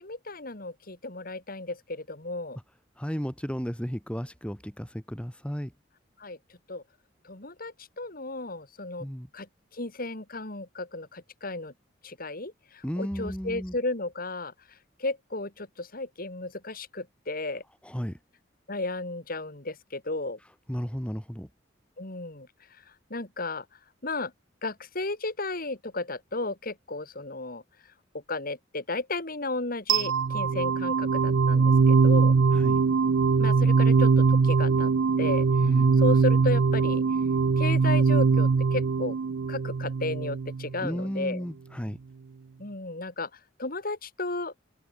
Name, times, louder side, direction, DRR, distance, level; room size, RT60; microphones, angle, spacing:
voice 1, 0.0-2.6 6.2-6.4 6.7-6.8 7.2-9.1 9.3-9.5 9.7-11.7 12.0-14.5 15.0-17.6 18.7-20.4 22.0-22.5 23.1-23.6 24.0-24.3 24.6-27.6 28.3-32.3 33.4-34.9 35.2-35.4 36.0-37.0 37.6-39.1 39.5-41.4 42.6-43.3 43.6-44.5, left 2 dB, 50° left, 3.4 m, -33 dB
voice 2, 3.0-5.7 9.0-9.3 12.8-13.8 17.8-18.2 20.7-21.5 32.5-32.8 35.6-36.0 40.8-42.0, equal, 5° left, 1.9 m, -34 dB
sound 1, 29.9-40.8, right 5 dB, 90° right, 0.5 m, -22 dB
head